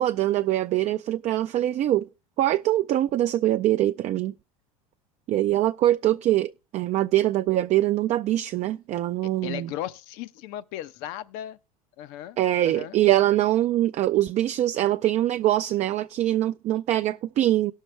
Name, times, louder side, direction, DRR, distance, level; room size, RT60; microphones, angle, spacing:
voice 1, 0.0-2.1 2.4-4.3 5.3-9.7 12.4-17.7, right 14 dB, 40° right, 0.4 m, -23 dB
voice 2, 9.2-11.6 12.0-13.0, left 12 dB, 60° left, 0.8 m, -37 dB
18.5 x 6.5 x 3.2 m
hypercardioid pair, 85°, 18 cm